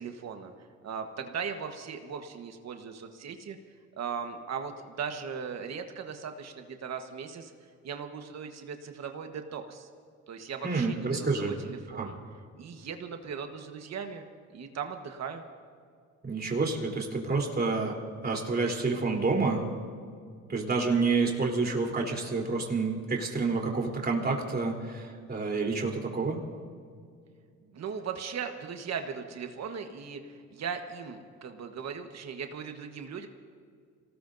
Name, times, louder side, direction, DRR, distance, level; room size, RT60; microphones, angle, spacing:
voice 1, 0.0-3.6 3.9-7.5 7.8-9.9 10.3-12.2 12.6-14.2 14.5-15.4 27.6-33.3, right 6 dB, 60° right, 6 dB, 1.3 m, -38 dB
voice 2, 10.6-11.5 11.9-12.1 16.2-18.0 18.2-19.6 20.5-26.4, right 4 dB, 30° right, 0 dB, 3.6 m, -28 dB
26.5 x 18.5 x 2.7 m, 2.2 s
cardioid pair, 90°, 30 cm